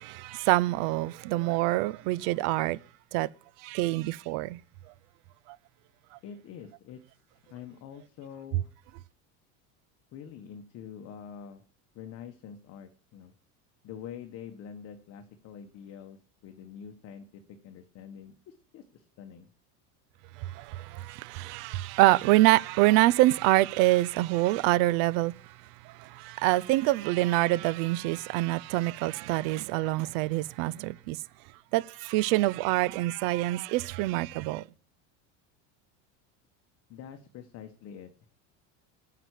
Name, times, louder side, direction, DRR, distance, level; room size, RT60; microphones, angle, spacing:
voice 1, 0.0-2.8 3.1-3.3 3.6-4.6 5.5-5.6 20.4-25.5 25.8-31.2 31.7-34.6, right 18 dB, 65° right, 0.6 m, -26 dB
voice 2, 6.2-8.7 10.1-11.6 11.9-13.3 13.8-19.5 36.9-38.1, left 8 dB, 40° left, 1.1 m, -46 dB
9.3 x 5.9 x 8.1 m
cardioid pair, 155°, 37 cm